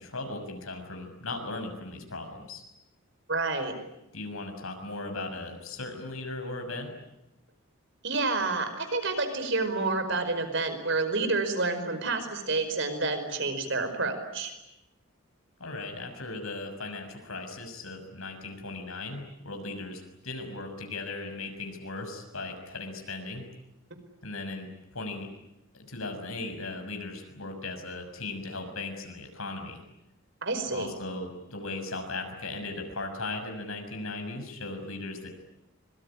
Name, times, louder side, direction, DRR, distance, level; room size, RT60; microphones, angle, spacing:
voice 1, 0.0-2.6 4.1-6.9 15.6-23.4 24.2-25.3 25.7-29.8 30.7-35.3, left 2 dB, 75° left, 4 dB, 6.5 m, -37 dB
voice 2, 3.3-3.7 8.0-14.5 30.4-30.9, right 3 dB, 55° right, 8 dB, 5.1 m, -29 dB
25.0 x 24.0 x 10.0 m, 0.90 s
head